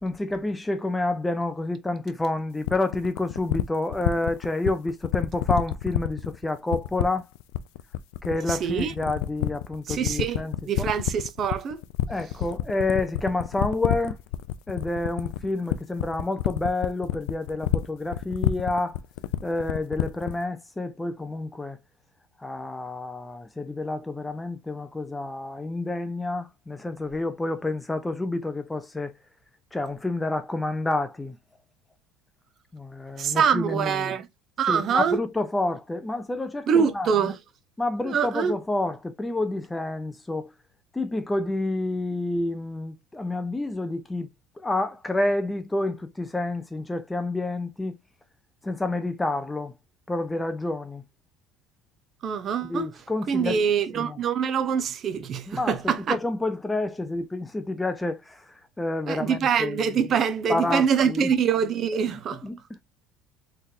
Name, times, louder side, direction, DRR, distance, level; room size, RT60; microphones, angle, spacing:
voice 1, 0.0-7.3 8.2-10.9 12.1-14.2 14.7-19.0 19.4-21.8 22.4-29.1 29.7-31.4 32.7-34.2 34.7-37.3 37.8-40.5 40.9-44.3 44.6-48.0 48.6-49.7 50.1-51.0 52.6-53.6 53.9-54.2 55.5-60.1 60.5-61.3 62.4-62.8, left 2 dB, 10° left, 0.4 m, -29 dB
sound 1, 2.6-20.4, left 14 dB, 80° left, 0.4 m, -27 dB
voice 2, 8.5-8.9 9.9-10.4 10.7-11.8 33.2-34.3 34.6-35.2 36.7-37.3 38.1-38.5 52.2-52.9 53.3-56.2 59.1-62.4, right 7 dB, 35° right, 0.6 m, -24 dB
3.9 x 3.2 x 2.7 m
cardioid pair, 145°, 0 cm